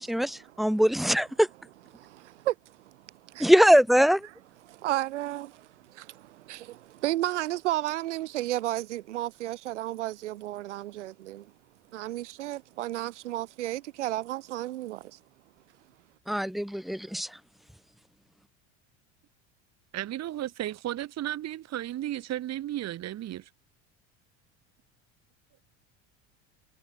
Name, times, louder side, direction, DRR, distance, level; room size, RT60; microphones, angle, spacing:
voice 1, 0.0-1.5 3.4-4.3 16.3-17.3, equal, ahead, 1.1 m, -22 dB
voice 2, 1.9-3.0 3.3-3.5 4.6-11.5 11.9-15.2, right 15 dB, 90° right, 1.3 m, -33 dB
voice 3, 19.9-23.5, right 13 dB, 50° right, 2.0 m, -34 dB
hypercardioid pair, 85°, 35 cm